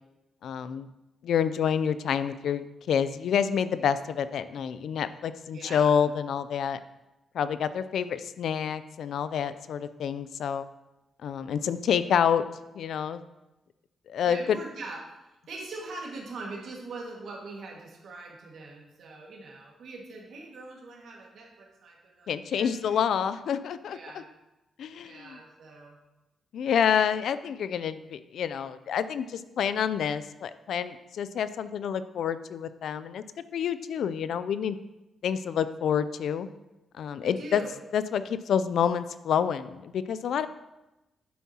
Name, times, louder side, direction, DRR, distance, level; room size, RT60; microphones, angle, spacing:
voice 1, 0.4-0.9 1.2-6.8 7.3-10.7 11.2-12.4 12.8-13.2 14.1-14.6 22.3-24.0 24.8-25.4 26.5-33.2 33.5-34.8 35.2-36.5 37.0-37.6 37.9-40.5, left 8 dB, 75° left, 13 dB, 0.4 m, -28 dB
voice 2, 5.5-5.9 14.2-15.2 15.5-23.0 23.9-24.3 25.0-26.0 37.2-37.7, right 3 dB, 65° right, -1 dB, 1.8 m, -42 dB
8.5 x 7.2 x 2.9 m, 0.97 s
cardioid pair, 125°, 0 cm